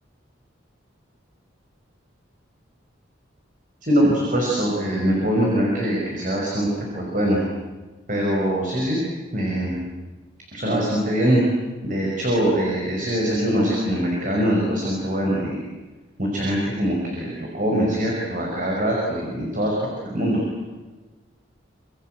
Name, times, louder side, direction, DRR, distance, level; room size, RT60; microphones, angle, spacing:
voice 1, 3.8-7.4 8.1-9.0 9.3-9.8 10.5-11.4 11.8-15.6 16.2-19.7 20.1-20.4, equal, 40° right, -2 dB, 5.8 m, -23 dB
27.0 x 24.5 x 7.9 m, 1.2 s
head